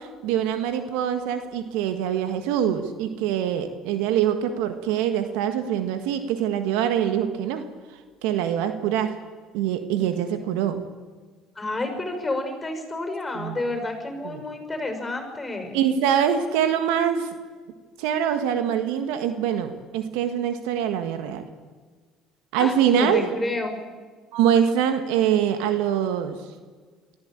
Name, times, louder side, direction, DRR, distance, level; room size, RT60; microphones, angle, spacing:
voice 1, 0.0-7.6 8.2-9.2 9.5-10.8 13.3-13.6 14.2-14.4 15.7-17.3 18.0-21.5 22.5-23.3 24.3-26.4, right 9 dB, 80° right, 8 dB, 1.6 m, -24 dB
voice 2, 11.5-15.8 22.6-23.8, left 2 dB, 20° left, 5 dB, 6.5 m, -30 dB
23.5 x 15.0 x 8.9 m, 1.5 s
supercardioid pair, 75°, 0 cm